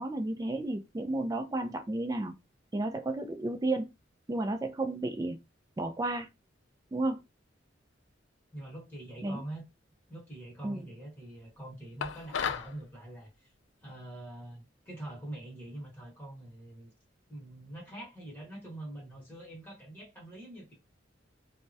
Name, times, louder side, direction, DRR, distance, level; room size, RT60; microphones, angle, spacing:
voice 1, 0.0-2.3 2.7-3.9 4.3-5.4 5.8-6.3 6.9-7.2 9.2-9.4 10.6-10.8, right 2 dB, 20° right, 0.3 m, -32 dB
voice 2, 8.5-9.6 10.1-13.5 13.8-16.9 17.3-20.7, right 1 dB, 10° left, 1.0 m, -44 dB
sound 1, 12.0-12.7, left 7 dB, 70° left, 0.4 m, -33 dB
3.4 x 2.1 x 2.6 m
head